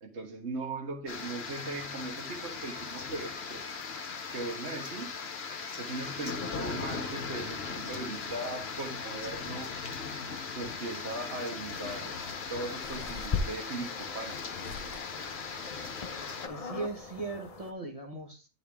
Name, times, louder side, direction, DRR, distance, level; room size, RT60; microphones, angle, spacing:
voice 1, 0.0-3.6 4.3-5.1 5.8-9.7 10.6-12.2 12.5-14.4, right 3 dB, 55° right, 1.7 m, -39 dB
sound 1, 1.1-16.5, left 5 dB, 50° left, 1.2 m, -38 dB
sound 2, 11.7-17.7, left 4 dB, 30° left, 0.8 m, -39 dB
voice 2, 16.5-18.5, right 3 dB, 25° right, 1.4 m, -38 dB
10.5 x 4.3 x 3.5 m
omnidirectional pair, 1.4 m